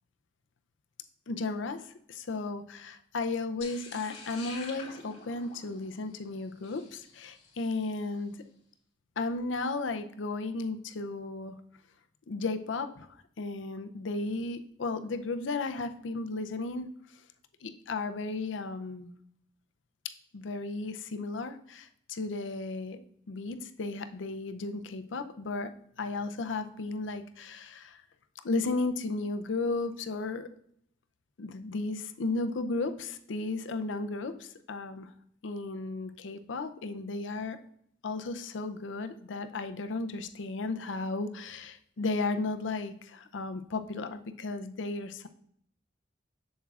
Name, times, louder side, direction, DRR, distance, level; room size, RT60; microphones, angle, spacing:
voice 1, 1.3-8.4 9.2-11.6 12.3-16.9 17.6-19.1 20.3-23.0 23.3-25.7 26.0-28.0 28.4-30.5 31.4-35.1 35.4-37.6 38.0-45.3, left 3 dB, 90° left, 9 dB, 0.5 m, -34 dB
sound 1, 3.6-7.9, left 4 dB, 40° left, 2.3 m, -47 dB
7.2 x 7.2 x 2.4 m, 0.68 s
head